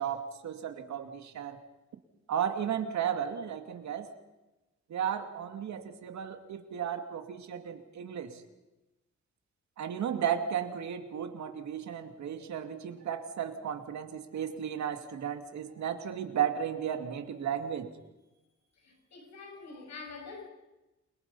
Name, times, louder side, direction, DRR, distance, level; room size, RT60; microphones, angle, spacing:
voice 1, 0.0-1.6 2.3-4.1 4.9-8.4 9.8-17.9, right 8 dB, 75° right, 2.4 m, -34 dB
voice 2, 18.7-20.5, left 4 dB, 70° left, 6.8 m, -46 dB
29.0 x 23.5 x 5.5 m
wide cardioid pair, 175°, 29 cm